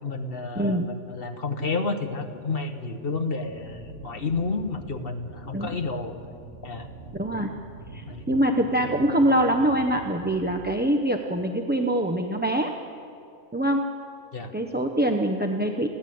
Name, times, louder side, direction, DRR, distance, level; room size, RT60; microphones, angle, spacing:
voice 1, 0.0-6.1 6.6-6.9 8.1-8.3 14.3-14.5, left 3 dB, 45° left, 7 dB, 1.3 m, -30 dB
voice 2, 0.5-0.9 5.5-5.7 7.1-7.5 7.9-12.7 13.5-13.8 14.5-15.9, right 1 dB, 10° right, 2 dB, 0.6 m, -24 dB
sound 1, 3.4-10.6, right 3 dB, 65° right, 1.6 m, -43 dB
29.5 x 11.5 x 7.8 m, 2.5 s
omnidirectional pair, 1.5 m